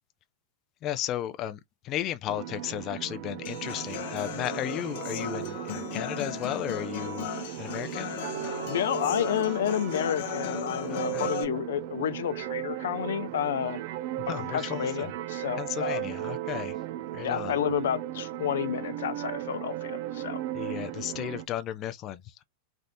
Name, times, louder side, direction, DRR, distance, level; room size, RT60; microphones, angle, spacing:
voice 1, 0.8-1.6 1.8-7.3 7.6-8.2 10.9-11.3 14.3-15.1 15.6-16.7 17.1-17.5 20.5-22.4, left 12 dB, 30° left, 0.3 m, -34 dB
sound 1, 2.3-21.5, right 13 dB, 50° right, 0.5 m, -36 dB
Human voice / Acoustic guitar, 3.4-11.4, left 11 dB, 55° left, 0.8 m, -37 dB
voice 2, 8.6-13.8 14.3-16.1 17.2-20.4, left 10 dB, 90° left, 0.6 m, -30 dB
3.3 x 2.7 x 2.5 m
supercardioid pair, 165°, 0 cm